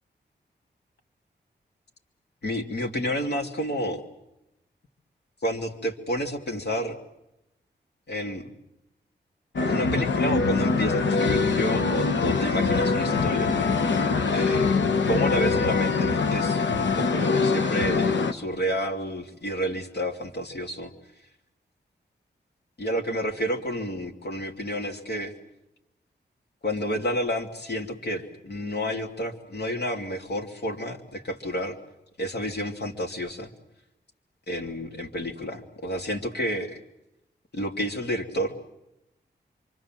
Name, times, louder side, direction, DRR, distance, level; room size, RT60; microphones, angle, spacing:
voice 1, 2.4-4.0 5.4-7.0 8.1-8.4 9.7-13.5 14.3-14.8 15.1-20.9 22.8-25.3 26.6-31.8 32.2-33.5 34.5-36.8 37.5-38.6, equal, 65° left, 3 dB, 2.8 m, -30 dB
sound 1, 9.6-18.3, left 4 dB, 80° left, 1.3 m, -23 dB
26.5 x 25.0 x 7.6 m, 0.88 s
cardioid pair, 65°, 18 cm